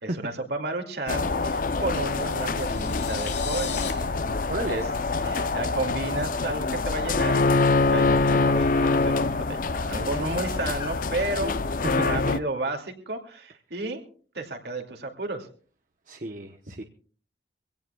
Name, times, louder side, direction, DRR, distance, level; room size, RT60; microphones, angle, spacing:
voice 1, 0.0-3.9 4.6-4.9 5.2-11.6 12.0-14.0 14.3-15.5, right 2 dB, 70° right, 3 dB, 2.5 m, -32 dB
sound 1, 1.1-12.4, left 3 dB, 50° left, 0.6 m, -25 dB
sound 2, 2.0-3.9, left 9 dB, 90° left, 3.4 m, -38 dB
voice 2, 4.5-4.9 5.2-5.5 11.8-12.4 16.1-16.8, right 1 dB, 45° right, 5 dB, 1.0 m, -33 dB
24.0 x 17.0 x 2.3 m, 0.42 s
head